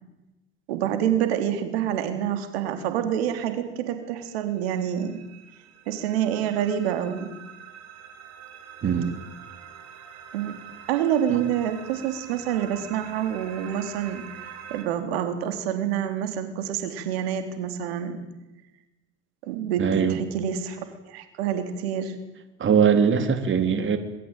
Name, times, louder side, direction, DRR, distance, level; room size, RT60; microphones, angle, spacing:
voice 1, 0.7-5.2 5.9-7.3 10.3-10.6 10.9-14.2 14.7-18.2 19.4-22.2, right 9 dB, 85° right, 7 dB, 3.7 m, -27 dB
sound 1, 4.3-14.9, right 8 dB, 55° right, 6.8 m, -45 dB
voice 2, 8.8-9.2 11.3-11.4 19.8-20.2 22.6-24.0, right 7 dB, 40° right, 8 dB, 3.9 m, -21 dB
26.0 x 22.0 x 9.2 m, 1.0 s
supercardioid pair, 80°, 30 cm